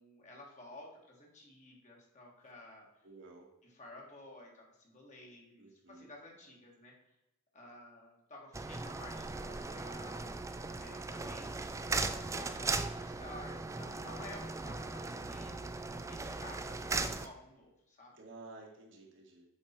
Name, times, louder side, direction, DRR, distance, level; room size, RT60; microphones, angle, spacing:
voice 1, 0.0-2.9 3.7-6.9 7.5-10.3 10.8-15.6 16.1-18.1, left 2 dB, 35° left, -1 dB, 1.7 m, -53 dB
voice 2, 3.0-3.5 5.6-6.1 12.2-12.8 18.1-19.4, right 2 dB, 55° right, 0 dB, 1.7 m, -53 dB
sound 1, 8.5-17.3, right 3 dB, 15° right, 0.3 m, -38 dB
8.1 x 4.7 x 4.4 m, 0.92 s
head